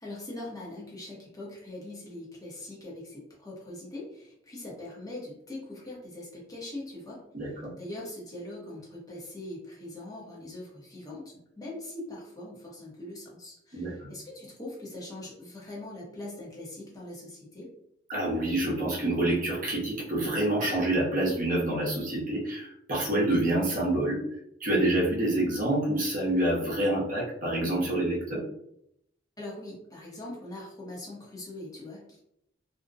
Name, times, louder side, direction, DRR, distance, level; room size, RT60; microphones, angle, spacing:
voice 1, 0.0-7.2 7.8-17.7 29.4-32.2, left 1 dB, 20° left, -4 dB, 0.8 m, -42 dB
voice 2, 7.3-7.7 13.7-14.1 18.1-24.2 24.6-28.4, right 1 dB, 45° right, -4 dB, 0.8 m, -27 dB
2.5 x 2.1 x 2.5 m, 0.75 s
head